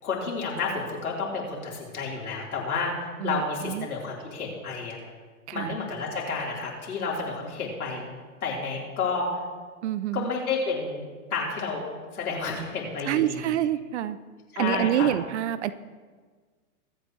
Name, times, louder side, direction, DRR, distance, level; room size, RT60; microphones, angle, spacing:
voice 1, 0.0-5.0 5.5-8.0 8.4-9.3 10.1-11.0 11.3-11.9 12.1-13.4 14.5-15.1, left 4 dB, 75° left, -3 dB, 3.9 m, -30 dB
voice 2, 3.2-3.9 5.5-5.8 9.8-10.3 13.0-14.2 14.6-15.7, right 11 dB, 50° right, 15 dB, 0.7 m, -27 dB
23.0 x 8.4 x 3.1 m, 1.5 s
hypercardioid pair, 110°, 44 cm